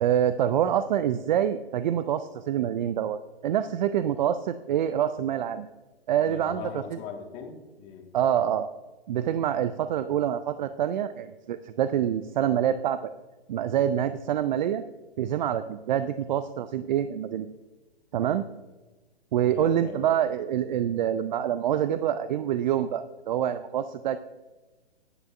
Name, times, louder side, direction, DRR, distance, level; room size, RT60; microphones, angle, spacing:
voice 1, 0.0-5.7 6.1-6.8 8.1-8.7 9.1-13.1 13.5-14.8 15.2-17.5 18.1-18.4 19.3-24.2, right 10 dB, 50° right, 12 dB, 0.4 m, -26 dB
voice 2, 6.2-8.1 19.4-20.2, left 6 dB, 30° left, 2 dB, 1.7 m, -39 dB
12.0 x 9.9 x 2.5 m, 1.2 s
hypercardioid pair, 130°, 31 cm